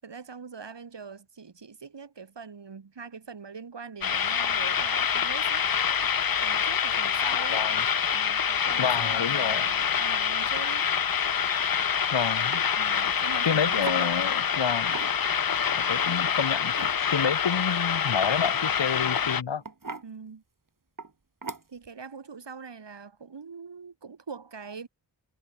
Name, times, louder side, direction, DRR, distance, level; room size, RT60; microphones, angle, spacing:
voice 1, 0.0-5.7 6.4-7.7 8.1-10.9 12.8-14.2 20.0-20.4 21.7-24.9, right 5 dB, 75° right, 6.1 m, -43 dB
sound 1, 4.0-19.4, left 7 dB, 55° left, 0.9 m, -26 dB
voice 2, 7.2-7.8 8.8-9.7 12.1-12.6 13.4-15.0 15.9-19.6, left 7 dB, 90° left, 3.2 m, -29 dB
sound 2, 11.8-12.0 12.5-12.7 13.9-14.0 14.8-15.4 16.3-17.0 18.6-18.9 19.6-20.1 21.0-21.1 21.4-21.9, right 3 dB, 50° right, 6.7 m, -38 dB
cardioid pair, 50°, 43 cm